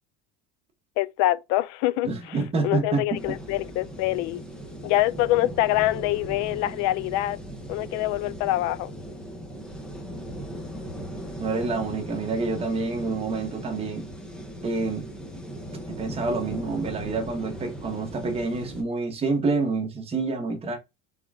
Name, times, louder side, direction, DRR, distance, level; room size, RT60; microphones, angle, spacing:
voice 1, 1.0-2.4 2.6-4.4 4.8-7.4 7.7-8.9, left 16 dB, 60° left, 0.5 m, -25 dB
voice 2, 2.0-3.4 11.4-14.1 14.6-15.1 15.9-20.8, right 3 dB, 20° right, 1.1 m, -28 dB
sound 1, 3.1-18.8, equal, 5° left, 0.7 m, -38 dB
3.8 x 3.6 x 3.5 m
cardioid pair, 170°, 31 cm